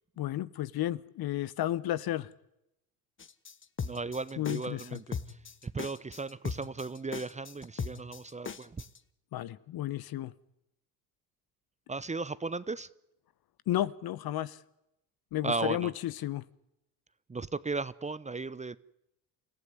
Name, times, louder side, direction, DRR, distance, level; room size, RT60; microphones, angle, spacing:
voice 1, 0.2-2.3 4.4-5.0 9.3-10.3 13.7-14.6 15.3-16.4, left 13 dB, 55° left, 18 dB, 1.1 m, -32 dB
sound 1, 3.2-9.0, left 6 dB, 25° left, 1.3 m, -39 dB
voice 2, 3.8-5.2 5.6-8.8 11.9-12.9 15.4-15.9 17.3-18.8, right 3 dB, 15° right, 17 dB, 0.8 m, -36 dB
28.0 x 15.0 x 9.7 m, 0.86 s
supercardioid pair, 75°, 44 cm